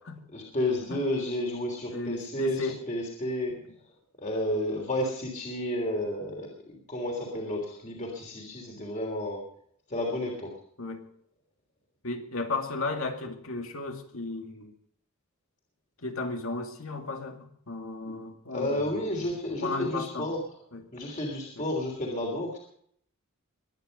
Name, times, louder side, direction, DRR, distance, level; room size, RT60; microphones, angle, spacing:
voice 1, 0.3-3.5 4.2-9.4 9.9-10.5 18.5-20.4 20.9-22.6, left 1 dB, 35° left, 0 dB, 3.2 m, -31 dB
voice 2, 1.9-2.8 10.8-11.1 12.0-14.7 16.0-19.1 19.6-20.3 20.7-20.9 21.6-21.7, left 3 dB, 80° left, 4 dB, 2.4 m, -35 dB
22.5 x 9.7 x 5.3 m, 0.65 s
head